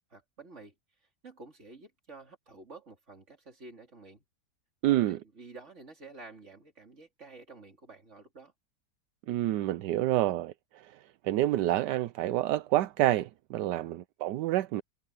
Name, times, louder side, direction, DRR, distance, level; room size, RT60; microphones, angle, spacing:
voice 1, 0.1-0.7 1.2-4.2 4.8-8.5, right 3 dB, 40° right, 3.6 m, -50 dB
voice 2, 4.8-5.2 9.3-14.8, right 14 dB, 80° right, 1.2 m, -28 dB
omnidirectional pair, 1.8 m